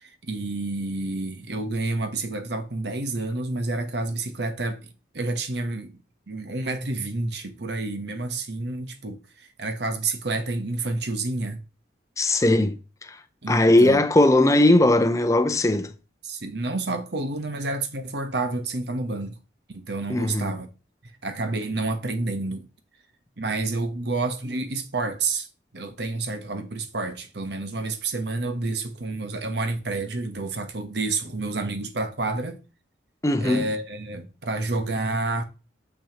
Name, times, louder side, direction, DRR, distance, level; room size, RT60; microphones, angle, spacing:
voice 1, 0.0-4.8 5.1-5.9 6.3-11.6 13.4-14.0 16.2-19.4 19.7-20.7 21.2-22.7 23.4-25.5 25.7-32.6 33.4-35.4, right 2 dB, 65° right, 1.0 m, -29 dB
voice 2, 12.2-13.2 13.5-15.9 20.1-20.6 33.2-33.7, left 1 dB, 15° left, 0.6 m, -19 dB
6.9 x 6.2 x 2.9 m
head